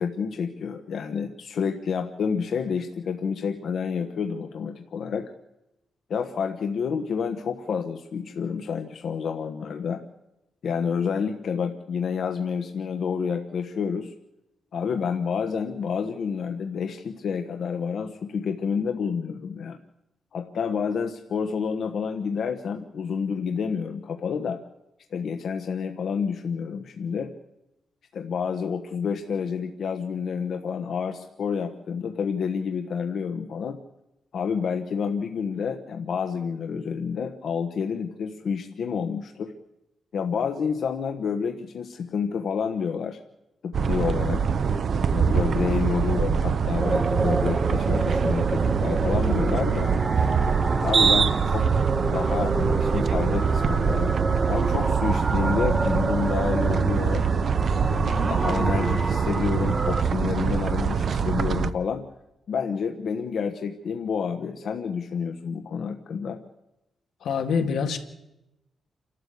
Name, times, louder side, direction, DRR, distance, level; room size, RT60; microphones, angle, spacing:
voice 1, 0.0-5.3 6.1-10.0 10.6-14.1 14.7-19.8 20.3-24.6 25.1-27.3 28.1-33.8 34.3-39.5 40.1-43.2 43.6-44.4 45.1-49.9 50.8-51.7 52.1-54.1 54.5-57.2 57.9-62.1 62.5-66.4, left 6 dB, 60° left, 5 dB, 1.2 m, -29 dB
sound 1, 43.7-61.7, right 6 dB, 45° right, 0.7 m, -24 dB
sound 2, 46.8-60.0, right 2 dB, 20° right, 1.0 m, -30 dB
voice 2, 67.2-68.0, left 6 dB, 85° left, 5 dB, 2.1 m, -25 dB
28.5 x 13.0 x 8.2 m, 0.91 s
wide cardioid pair, 170°, 0 cm